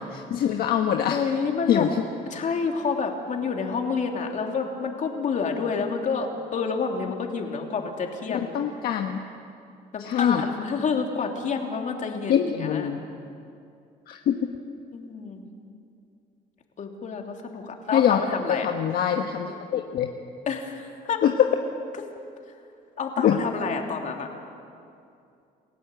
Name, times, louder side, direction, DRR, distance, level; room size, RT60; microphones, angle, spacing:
voice 1, 0.0-1.2 1.7-2.0 8.5-9.2 10.0-10.4 12.3-13.0 14.1-14.4 17.9-18.2 18.5-20.1 21.2-21.5 23.2-23.4, left 9 dB, 65° left, 4 dB, 1.2 m, -23 dB
voice 2, 1.1-1.9 2.3-8.6 9.9-12.9 14.9-15.4 16.8-18.7 20.5-21.2 23.0-24.3, left 5 dB, 45° left, 2 dB, 2.9 m, -29 dB
29.0 x 15.5 x 7.9 m, 2.5 s
cardioid pair, 110°, 17 cm